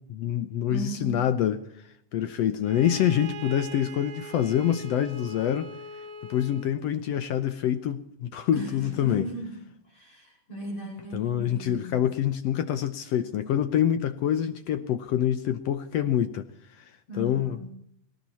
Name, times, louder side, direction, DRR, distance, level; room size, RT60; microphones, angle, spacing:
voice 1, 0.0-1.6 2.1-5.7 6.3-9.3 11.1-16.4 16.8-17.8, left 10 dB, 75° left, 1.6 m, -26 dB
voice 2, 0.7-1.3 8.5-12.0 17.1-17.6, right 1 dB, 40° left, 6.2 m, -37 dB
Bowed string instrument, 2.6-6.8, right 1 dB, 90° right, 0.8 m, -42 dB
18.5 x 18.0 x 4.2 m
omnidirectional pair, 3.7 m